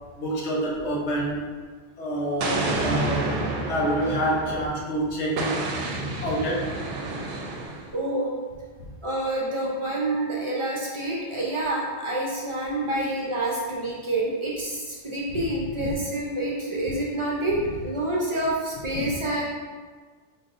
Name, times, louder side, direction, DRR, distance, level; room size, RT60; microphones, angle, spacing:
voice 1, 0.2-1.4 2.0-3.3 3.7-5.6 6.2-6.7 15.3-15.4 15.7-15.9 18.9-19.1, equal, 80° left, -3 dB, 1.0 m, -27 dB
Explosion, 2.4-4.8 5.4-7.9, right 2 dB, 65° right, 0.8 m, -29 dB
voice 2, 7.9-8.3 9.0-19.4, right 1 dB, 35° right, -4 dB, 0.6 m, -27 dB
4.0 x 3.8 x 2.5 m, 1.5 s
omnidirectional pair, 1.1 m